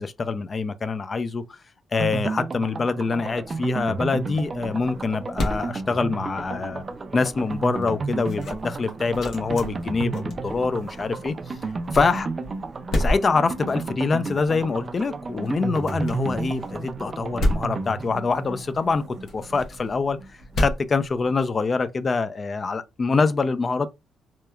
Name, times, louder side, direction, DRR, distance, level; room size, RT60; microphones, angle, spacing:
voice 1, 0.0-1.4 1.9-6.8 7.1-11.6 11.9-12.3 13.0-19.0 19.3-20.2 20.6-23.9, left 4 dB, 35° left, 0.4 m, -25 dB
sound 1, 2.0-20.6 20.9-21.0 21.2-21.3, right 4 dB, 35° right, 0.3 m, -33 dB
sound 2, 3.4-21.8, left 1 dB, 65° left, 0.8 m, -33 dB
2.9 x 2.1 x 2.3 m
cardioid pair, 90°, 0 cm